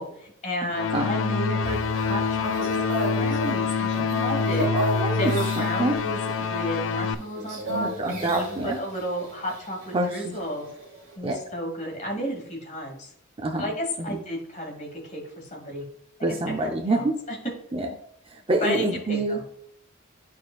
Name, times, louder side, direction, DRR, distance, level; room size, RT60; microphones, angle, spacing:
voice 1, 0.0-4.7 5.1-10.7 11.2-13.1 13.6-15.8 16.6-17.4 18.6-19.5, equal, 40° left, -1 dB, 2.1 m, -32 dB
sound 1, 0.7-7.1, left 5 dB, 75° left, 0.4 m, -26 dB
sound 2, 1.6-11.1, right 1 dB, 60° right, 2.6 m, -35 dB
voice 2, 4.6-6.0 7.7-8.8 9.9-10.3 11.2-11.4 13.4-13.7 14.0-14.2 16.2-17.2 17.7-17.9 18.2-19.4, right 2 dB, 30° right, 2 dB, 0.5 m, -27 dB
11.0 x 4.3 x 2.3 m, 0.71 s
head